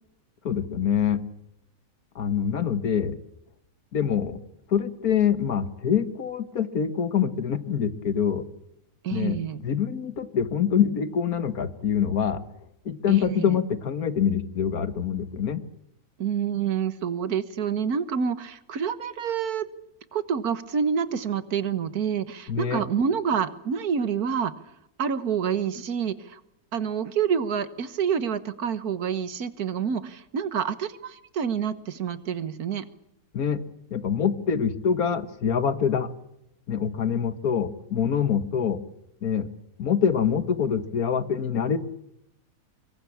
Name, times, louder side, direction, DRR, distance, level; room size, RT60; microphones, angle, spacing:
voice 1, 0.4-1.2 2.2-3.2 3.9-4.4 4.7-8.4 9.1-12.4 12.9-15.6 22.5-22.8 33.3-33.6 33.9-36.1 36.7-38.8 39.2-39.5 39.8-41.8, left 7 dB, 80° left, 12 dB, 1.9 m, -25 dB
voice 2, 9.0-9.6 13.1-13.6 16.2-19.7 20.1-24.5 25.0-26.4 26.7-32.9, right 7 dB, 85° right, 14 dB, 1.8 m, -27 dB
25.0 x 22.5 x 8.6 m, 0.83 s
omnidirectional pair, 1.5 m